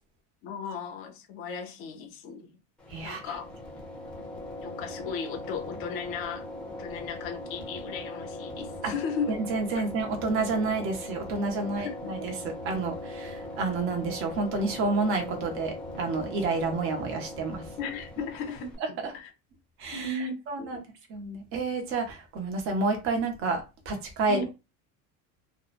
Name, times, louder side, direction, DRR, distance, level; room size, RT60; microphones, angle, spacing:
voice 1, 0.4-2.6 3.0-3.5 4.3-6.5 6.8-9.3 9.8-9.9 11.6-12.1 17.8-19.3 19.9-20.9 24.3-24.5, left 4 dB, 40° left, 0.5 m, -36 dB
sound 1, 2.8-18.8, left 1 dB, 5° left, 0.7 m, -40 dB
voice 2, 2.9-3.2 8.8-8.9 9.5-17.7 19.8-20.2 20.5-20.8 21.1-24.5, right 3 dB, 35° right, 0.7 m, -29 dB
2.8 x 2.0 x 2.4 m
cardioid pair, 175°, 35 cm